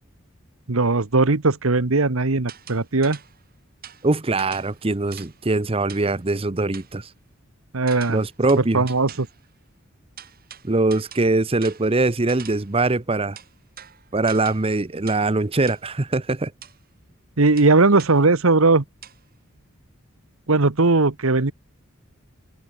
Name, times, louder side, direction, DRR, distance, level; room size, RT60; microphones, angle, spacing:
voice 1, 0.7-3.2 7.7-8.2 8.6-9.3 17.4-18.8 20.5-21.5, right 3 dB, 75° right, 1.3 m, -18 dB
sound 1, 2.5-3.4 3.8-5.4 5.9-6.2 6.7-7.0 7.9-9.4 10.2-12.8 13.4-14.8 15.1-15.4 15.7-15.9 16.6-16.8 17.6-18.2 19.0-19.2, right 9 dB, 45° right, 4.5 m, -44 dB
voice 2, 4.0-7.1 8.1-8.9 10.6-13.4 14.1-16.5, right 2 dB, 25° right, 0.8 m, -22 dB
head